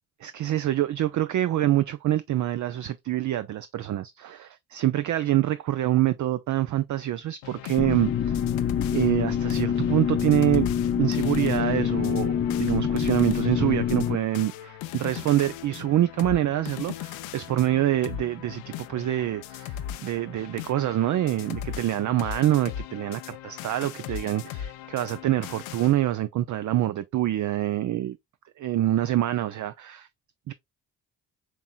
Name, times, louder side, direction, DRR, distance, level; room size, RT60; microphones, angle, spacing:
voice 1, 0.2-8.4 8.9-10.7 11.0-28.2 28.6-30.1 30.5-30.6, right 13 dB, 40° right, 0.4 m, -26 dB
sound 1, 7.4-25.9, left 11 dB, 75° left, 0.6 m, -39 dB
sound 2, 7.8-14.2, left 8 dB, 30° left, 0.5 m, -26 dB
5.2 x 3.0 x 2.3 m
hypercardioid pair, 40°, 47 cm